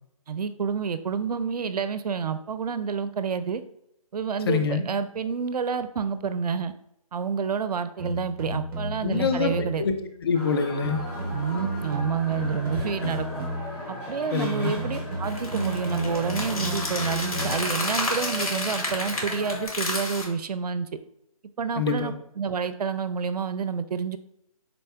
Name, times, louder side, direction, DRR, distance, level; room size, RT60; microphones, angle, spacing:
voice 1, 0.3-3.6 4.1-6.7 7.1-9.8 11.3-13.4 13.9-20.9 21.6-24.2, right 6 dB, 85° right, 12 dB, 0.4 m, -29 dB
voice 2, 4.5-4.8 9.0-11.1 13.0-13.1 14.3-14.8 21.8-22.1, left 5 dB, 40° left, 6 dB, 0.5 m, -26 dB
sound 1, 8.0-9.9 10.8-13.9 14.8-17.9, right 1 dB, 35° right, 0.7 m, -33 dB
sound 2, 10.3-19.7, left 1 dB, 10° left, 0.8 m, -37 dB
sound 3, 15.2-20.2, left 2 dB, 70° left, 1.3 m, -31 dB
4.2 x 4.0 x 2.2 m, 0.77 s
hypercardioid pair, 155°, 19 cm